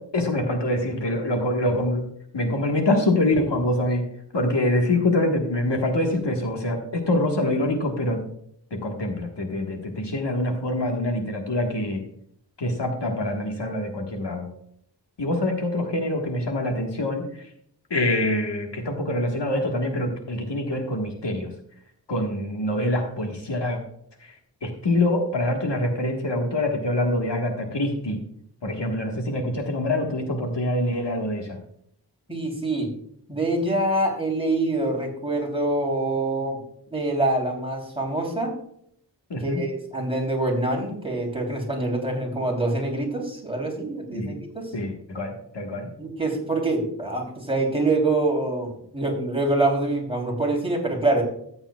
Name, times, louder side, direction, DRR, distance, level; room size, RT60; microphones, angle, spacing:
voice 1, 0.0-4.1 4.3-8.2 8.7-12.0 12.6-14.5 15.2-17.5 17.9-21.5 22.1-23.8 24.2-24.3 24.6-28.2 28.6-31.6 39.3-39.6 44.1-44.4 44.7-45.9, left 1 dB, 75° left, 2 dB, 1.6 m, -25 dB
voice 2, 32.3-32.9 33.3-36.6 36.9-38.5 39.4-44.7 46.0-51.2, right 2 dB, 15° right, -1 dB, 3.3 m, -25 dB
13.5 x 8.7 x 2.4 m, 0.69 s
wide cardioid pair, 65°, 43 cm